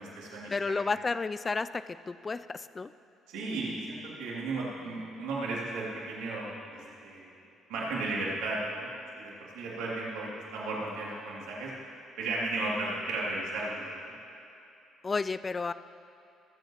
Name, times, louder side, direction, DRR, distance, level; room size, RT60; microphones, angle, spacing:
voice 1, 0.0-0.8 3.3-7.3 7.7-8.9 9.2-11.7 12.2-14.1, right 2 dB, 80° right, -5 dB, 2.8 m, -35 dB
voice 2, 0.5-2.9 15.0-15.7, left 4 dB, 30° left, 14 dB, 0.4 m, -32 dB
23.5 x 7.9 x 3.1 m, 2.8 s
supercardioid pair, 65°, 0 cm